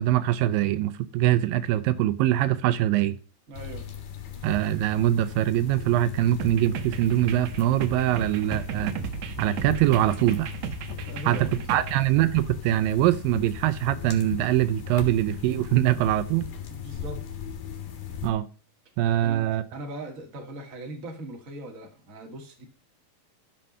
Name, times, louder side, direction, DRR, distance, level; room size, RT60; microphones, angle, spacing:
voice 1, 0.0-3.2 4.4-8.9 9.4-10.5 11.2-16.5 18.2-18.5 19.0-19.6, right 13 dB, 80° right, 14 dB, 2.3 m, -23 dB
sound 1, 3.5-18.3, left 8 dB, 75° left, 3.4 m, -37 dB
voice 2, 3.5-3.8 11.1-11.8 16.7-17.2 19.1-19.4 19.7-22.7, right 1 dB, 30° right, 3 dB, 2.0 m, -39 dB
sound 2, 6.4-12.0, right 7 dB, 65° right, 1.9 m, -35 dB
13.5 x 5.5 x 5.5 m, 0.36 s
omnidirectional pair, 4.1 m